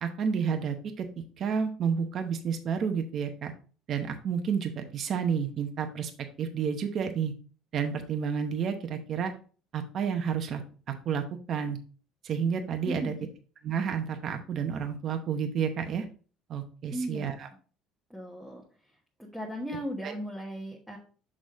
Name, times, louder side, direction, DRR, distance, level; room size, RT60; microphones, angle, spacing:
voice 1, 0.0-3.5 3.9-6.1 6.4-7.3 7.7-9.3 9.7-10.6 10.9-11.8 12.2-13.1 13.6-16.1 16.5-17.5 20.0-20.1, right 7 dB, 40° right, 5 dB, 0.9 m, -30 dB
voice 2, 12.8-13.3 16.9-17.3 18.1-18.6 19.2-21.0, equal, ahead, -3 dB, 1.2 m, -36 dB
6.3 x 5.0 x 3.7 m, 0.38 s
cardioid pair, 145°, 0 cm